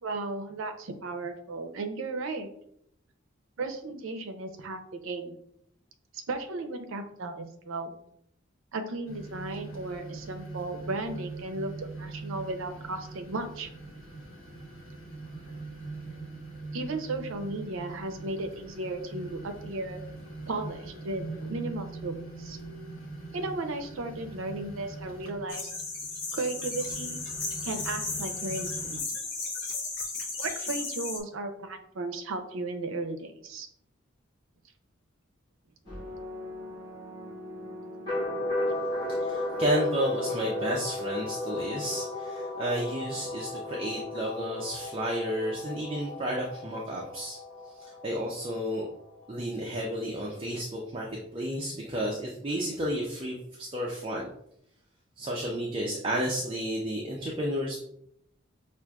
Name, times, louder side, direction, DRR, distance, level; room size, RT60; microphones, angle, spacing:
voice 1, 0.0-2.5 3.6-5.4 6.1-7.9 8.7-13.7 16.7-20.0 20.5-22.6 23.3-25.7 26.3-27.2 27.6-29.0 30.4-33.7, right 2 dB, 75° right, 6 dB, 0.5 m, -35 dB
sound 1, 9.1-29.0, right 3 dB, 80° left, 1.2 m, -42 dB
sound 2, 25.5-31.2, left 3 dB, 60° left, 0.8 m, -35 dB
sound 3, 35.9-49.4, left 1 dB, 25° left, 1.3 m, -35 dB
voice 2, 39.2-47.4 47.7-48.9 49.3-54.3 55.2-57.8, equal, 25° right, -2 dB, 0.4 m, -32 dB
5.8 x 2.4 x 2.3 m, 0.73 s
head